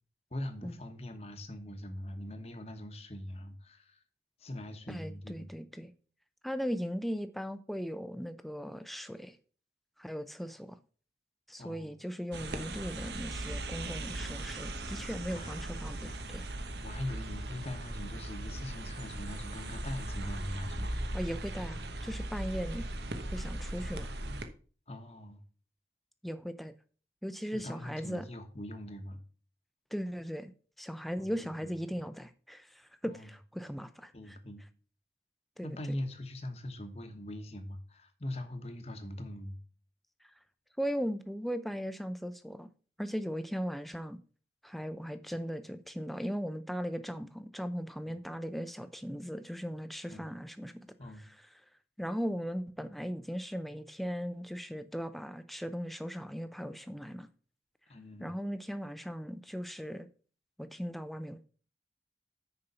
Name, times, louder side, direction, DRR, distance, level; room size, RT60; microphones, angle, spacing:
voice 1, 0.3-4.0 4.4-5.5 11.6-11.9 14.2-14.3 15.3-15.6 16.8-20.9 24.9-25.4 27.5-29.2 31.2-32.0 33.1-33.3 34.1-34.6 35.6-39.6 48.1-48.2 50.1-50.3 51.0-51.3 57.9-58.3, left 1 dB, 35° left, 1.2 m, -42 dB
voice 2, 4.9-5.9 6.4-9.4 10.0-10.8 11.5-16.4 21.1-22.8 23.3-24.1 26.2-26.7 27.2-28.3 29.9-30.5 30.8-34.4 35.6-35.8 40.8-42.7 43.0-44.2 44.6-50.7 51.2-51.5 52.0-57.3 58.2-60.1 60.6-61.4, equal, ahead, 0.5 m, -38 dB
sound 1, 12.3-24.4, right 1 dB, 75° right, 1.1 m, -38 dB
6.8 x 5.4 x 6.8 m
head